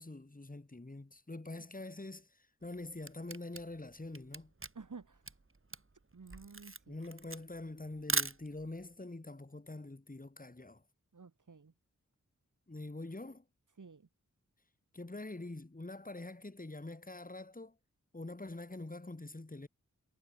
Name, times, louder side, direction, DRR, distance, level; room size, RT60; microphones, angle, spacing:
voice 1, 0.0-4.5 6.9-10.8 12.7-13.4 14.9-17.7 18.1-19.7, left 2 dB, 25° left, 2.8 m, -45 dB
Camera, 2.6-8.9, right 3 dB, 40° right, 3.7 m, -40 dB
voice 2, 4.8-5.2 6.1-7.0 11.1-11.7 13.8-14.1, right 4 dB, 70° right, 3.5 m, -52 dB
cardioid pair, 40°, 32 cm